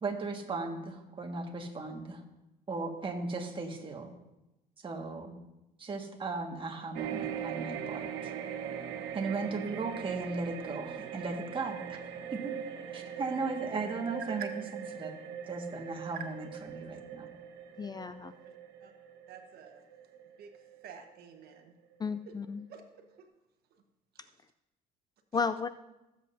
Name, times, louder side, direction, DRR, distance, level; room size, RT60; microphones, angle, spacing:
voice 1, 0.0-2.2 2.7-4.1 4.8-5.4 5.8-8.3 9.1-12.0 12.3-12.6 12.9-14.5 14.9-15.1 15.5-16.5 16.7-17.3, right 3 dB, 30° right, 2 dB, 1.7 m, -36 dB
sound 1, 6.9-21.5 21.9-22.1, right 8 dB, 90° right, 1.0 m, -41 dB
voice 2, 17.8-18.3 22.0-22.7 25.3-25.7, left 5 dB, 25° left, 11 dB, 0.3 m, -33 dB
voice 3, 19.3-19.8 20.4-20.5 20.8-21.7 22.7-23.3 23.7-23.8, right 8 dB, 70° right, 6 dB, 1.3 m, -49 dB
18.5 x 7.8 x 2.7 m, 0.97 s
cardioid pair, 110°, 17 cm